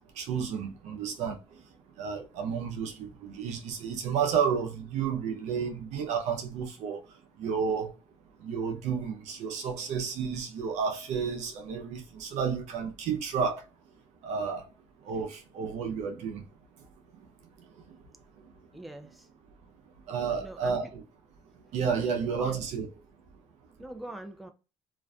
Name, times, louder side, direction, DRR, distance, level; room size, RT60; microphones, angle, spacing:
voice 1, 0.2-1.4 2.0-7.0 7.4-7.9 8.4-13.6 14.2-14.6 15.1-16.4 20.1-21.0 21.7-22.9, right 6 dB, 75° right, 0.6 m, -31 dB
voice 2, 18.7-19.3 20.4-20.8 22.3-22.6 23.8-24.5, right 1 dB, ahead, 0.4 m, -43 dB
2.5 x 2.1 x 2.3 m
supercardioid pair, 75°, 12 cm